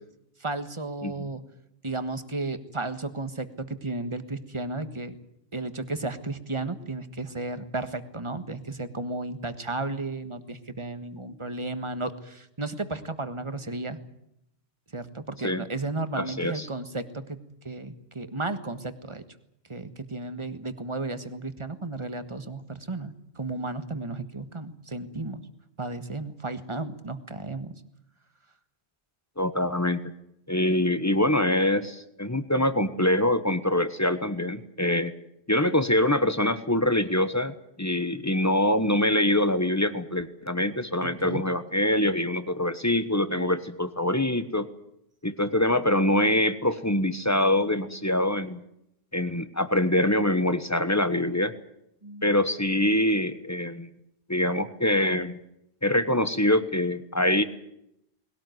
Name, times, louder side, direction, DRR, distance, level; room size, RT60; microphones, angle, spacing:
voice 1, 0.4-1.4 1.8-5.1 5.5-14.0 14.9-17.4 17.6-19.2 19.7-25.4 25.8-27.8 41.0-41.4 43.4-43.5 52.0-52.3, right 2 dB, 25° right, 10 dB, 1.5 m, -34 dB
voice 2, 16.2-16.7 29.4-30.0 30.5-35.1 35.5-44.7 45.2-48.6 49.1-51.5 52.2-53.9 54.3-55.4 55.8-57.4, left 1 dB, 15° left, 12 dB, 1.2 m, -24 dB
20.5 x 18.0 x 9.3 m, 0.79 s
omnidirectional pair, 1.1 m